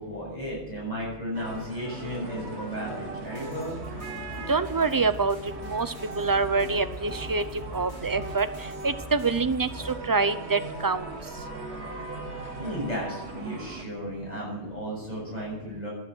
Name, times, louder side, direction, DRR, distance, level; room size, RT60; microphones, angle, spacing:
voice 1, 0.0-3.8 12.6-15.9, equal, 40° left, -5 dB, 7.3 m, -34 dB
sound 1, 1.3-13.8, right 2 dB, 75° right, 2.3 m, -39 dB
sound 2, 3.4-9.9, equal, 60° left, 8.2 m, -44 dB
voice 2, 4.5-5.4 5.6-7.4 7.7-8.5 8.8-11.1, right 4 dB, 20° right, 11 dB, 0.7 m, -26 dB
17.0 x 11.0 x 6.4 m, 0.93 s
omnidirectional pair, 1.1 m